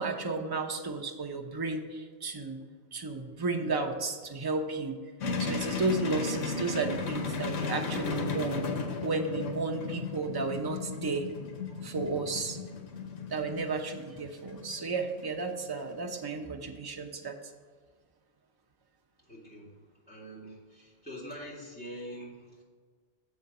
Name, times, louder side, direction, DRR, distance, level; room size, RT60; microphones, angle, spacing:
voice 1, 0.0-2.6 2.9-5.0 5.4-8.7 9.0-11.3 11.8-12.6 13.3-17.4, right 3 dB, 25° right, 3 dB, 0.5 m, -33 dB
sound 1, 5.2-15.9, left 4 dB, 85° left, 1.2 m, -35 dB
voice 2, 19.2-22.6, equal, 10° left, -6 dB, 2.3 m, -45 dB
7.3 x 4.5 x 6.7 m, 1.5 s
omnidirectional pair, 1.2 m